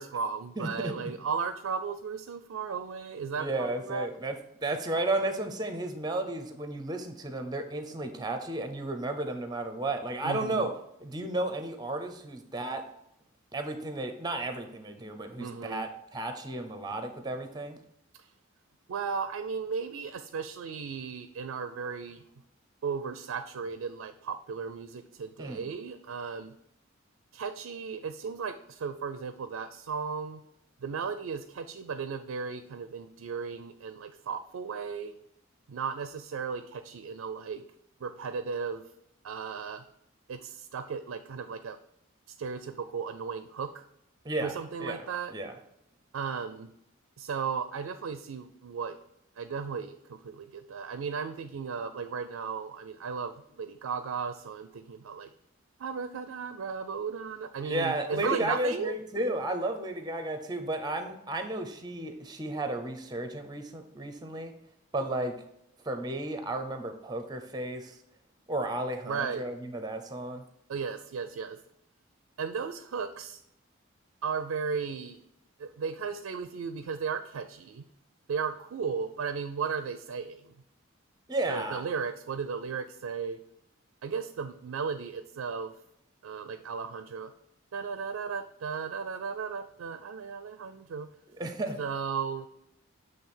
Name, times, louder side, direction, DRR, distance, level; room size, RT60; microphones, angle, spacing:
voice 1, 0.0-4.1 10.2-10.7 15.4-15.9 18.2-18.3 18.9-22.2 22.8-26.5 27.3-30.4 30.8-35.2 35.7-37.6 38.0-38.8 39.2-39.8 40.3-41.8 42.3-43.8 44.4-45.3 46.1-46.7 47.2-49.0 49.4-55.3 55.8-58.9 69.0-69.5 70.7-71.6 72.4-73.4 74.2-75.2 75.6-77.9 78.3-80.5 81.5-83.4 84.0-85.7 86.2-87.3 87.7-91.1 91.8-92.5, right 5 dB, 85° right, 10 dB, 0.4 m, -35 dB
voice 2, 0.6-0.9 3.4-4.4 4.6-10.7 11.0-12.9 13.5-17.8 25.4-25.7 44.2-44.5 44.8-45.0 45.3-45.5 57.6-64.5 64.9-65.4 65.8-68.0 68.5-70.4 81.3-81.8 91.4-91.8, right 2 dB, 20° right, 7 dB, 0.6 m, -33 dB
7.7 x 3.2 x 4.4 m, 0.79 s
head